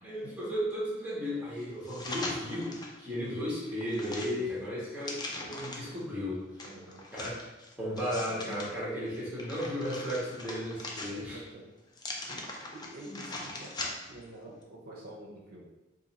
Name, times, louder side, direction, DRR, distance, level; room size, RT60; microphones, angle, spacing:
voice 1, 0.0-6.4 7.1-7.5 7.8-11.4 13.1-13.2, equal, 5° right, -8 dB, 1.0 m, -35 dB
sound 1, 1.8-3.0 3.4-6.0 6.6-8.7 9.1-11.5 11.9-14.2 14.6-14.7, left 2 dB, 20° left, 0.4 m, -41 dB
voice 2, 6.6-7.1 11.1-11.4 12.3-12.5 12.7-15.7, right 1 dB, 50° right, -4 dB, 0.5 m, -48 dB
2.6 x 2.5 x 4.0 m, 1.1 s
head